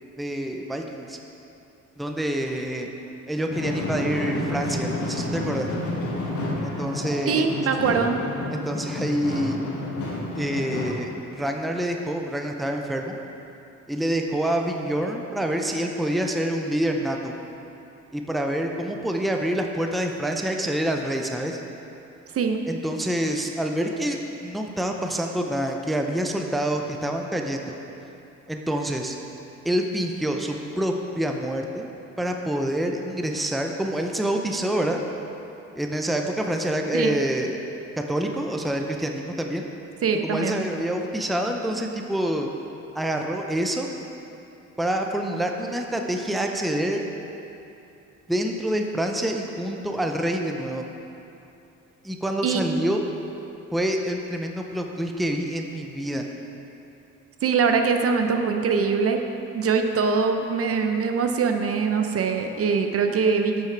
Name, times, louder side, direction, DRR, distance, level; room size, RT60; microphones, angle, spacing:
voice 1, 0.2-1.2 2.0-2.9 3.3-5.7 6.6-7.5 8.5-9.6 10.3-13.2 13.9-17.3 18.1-21.6 22.7-27.8 28.5-29.2 29.6-31.9 32.2-35.0 35.7-37.6 38.0-39.7 40.2-42.5 42.9-43.9 44.8-47.0 48.3-50.9 52.0-53.0 53.7-56.3, right 1 dB, ahead, 3 dB, 0.6 m, -27 dB
sound 1, 3.5-10.8, left 2 dB, 75° left, 1.9 m, -30 dB
voice 2, 7.3-8.2 22.3-22.6 36.9-37.2 40.0-40.7 52.4-52.6 57.4-59.2 59.5-63.7, right 5 dB, 50° right, 5 dB, 0.7 m, -23 dB
8.9 x 5.8 x 4.5 m, 2.8 s
cardioid pair, 90°, 30 cm